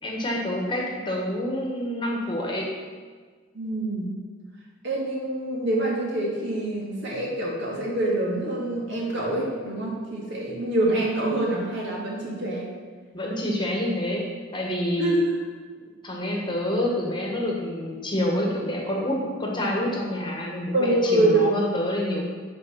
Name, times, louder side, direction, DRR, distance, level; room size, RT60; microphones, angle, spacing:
voice 1, 0.0-2.7 13.1-15.2 16.0-22.3, left 1 dB, 25° left, -1 dB, 1.3 m, -27 dB
voice 2, 3.5-4.1 4.8-12.7 15.0-15.3 20.7-21.4, right 1 dB, 60° right, -4 dB, 2.3 m, -25 dB
9.7 x 4.7 x 5.8 m, 1.5 s
head